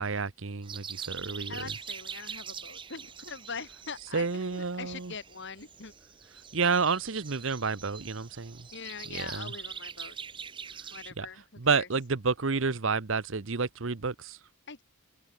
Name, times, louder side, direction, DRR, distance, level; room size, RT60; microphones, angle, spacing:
voice 1, 0.0-1.8 4.0-5.2 6.5-8.7 9.0-9.5 11.2-11.3 11.6-14.4, right 4 dB, 60° right, 0.9 m, -30 dB
sound 1, 0.6-11.1, right 7 dB, 25° right, 0.8 m, -44 dB
voice 2, 1.5-5.9 8.7-10.2 10.9-11.9 14.7-14.8, left 5 dB, 55° left, 2.4 m, -43 dB
head